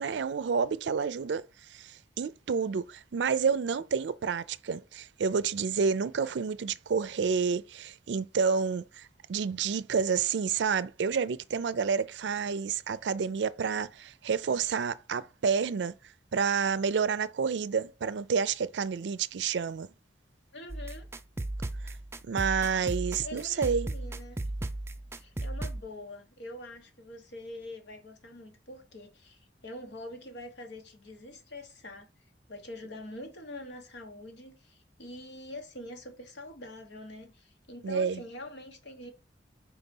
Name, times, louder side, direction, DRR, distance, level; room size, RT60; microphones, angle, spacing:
voice 1, 0.0-1.4 1.7-15.9 16.3-19.9 22.3-23.9 37.8-38.2, right 6 dB, 80° right, 0.4 m, -29 dB
voice 2, 20.5-21.1 23.2-24.4 25.1-32.1 32.5-39.1, left 1 dB, 75° left, 1.3 m, -44 dB
sound 1, 20.7-25.8, right 1 dB, 15° right, 0.4 m, -35 dB
4.5 x 4.0 x 5.3 m
head